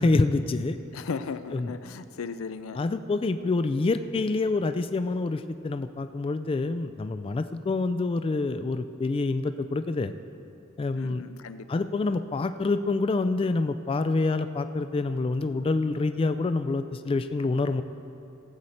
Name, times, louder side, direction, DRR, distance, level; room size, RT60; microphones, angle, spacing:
voice 1, 0.0-0.8 1.5-1.8 2.8-10.1 10.8-11.2 11.7-17.8, left 3 dB, 25° left, 10 dB, 0.3 m, -27 dB
voice 2, 0.9-2.8 10.9-11.8, left 5 dB, 90° left, 12 dB, 0.5 m, -36 dB
17.5 x 7.9 x 4.3 m, 2.8 s
head